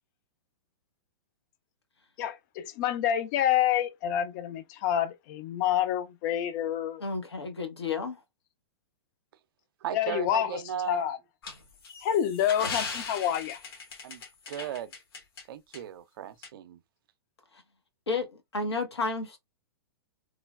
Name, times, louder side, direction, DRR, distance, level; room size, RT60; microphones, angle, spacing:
voice 1, 2.2-7.0 9.9-10.6 10.9-11.2 12.0-13.6, left 10 dB, 45° left, 0.5 m, -28 dB
voice 2, 7.0-8.2 18.1-19.4, left 4 dB, 85° left, 0.9 m, -31 dB
voice 3, 9.8-11.0 14.0-14.2 14.5-14.9 15.5-16.8, right 9 dB, 60° right, 0.4 m, -36 dB
sound 1, 11.4-15.4 15.7-15.8 16.4-16.5, left 4 dB, 65° left, 1.1 m, -38 dB
3.1 x 2.2 x 2.3 m
hypercardioid pair, 110°, 13 cm